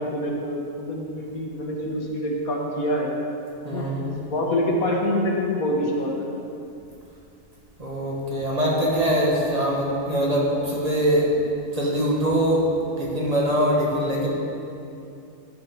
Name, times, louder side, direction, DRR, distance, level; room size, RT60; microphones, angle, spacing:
voice 1, 0.0-3.1 3.7-3.9 4.3-6.3 14.2-14.3, left 1 dB, 65° left, 0 dB, 1.5 m, -26 dB
voice 2, 3.6-4.1 7.8-11.3 11.7-12.7 13.0-14.3, equal, 25° right, -4 dB, 1.4 m, -23 dB
14.0 x 5.2 x 4.5 m, 2.6 s
omnidirectional pair, 1.7 m